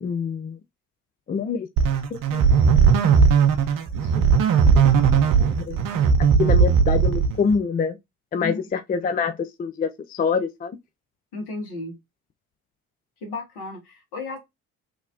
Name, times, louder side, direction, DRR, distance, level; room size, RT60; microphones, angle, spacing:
voice 1, 0.0-0.6 1.3-1.7 2.1-2.4 4.1-4.3 5.4-5.8 6.4-8.0 8.3-10.7, left 5 dB, 20° left, 0.4 m, -26 dB
sound 1, 1.8-7.6, right 6 dB, 50° right, 0.7 m, -18 dB
voice 2, 11.3-12.0 13.2-14.4, left 2 dB, 60° left, 1.6 m, -33 dB
2.9 x 2.8 x 2.5 m
hypercardioid pair, 45°, 42 cm